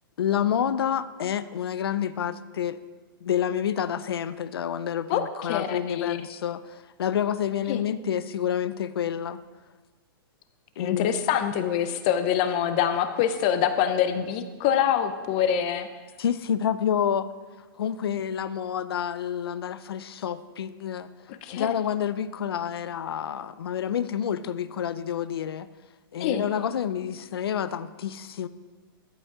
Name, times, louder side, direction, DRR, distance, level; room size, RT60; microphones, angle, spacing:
voice 1, 0.2-2.8 3.2-9.4 10.8-11.1 16.2-17.3 17.8-21.1 21.5-25.7 26.1-28.5, left 9 dB, 90° left, 14 dB, 0.5 m, -28 dB
voice 2, 5.5-6.2 7.7-7.8 10.8-15.9 21.3-21.7 26.2-26.4, left 9 dB, 25° left, 10 dB, 0.4 m, -25 dB
13.5 x 8.2 x 3.7 m, 1.3 s
hypercardioid pair, 175°, 12 cm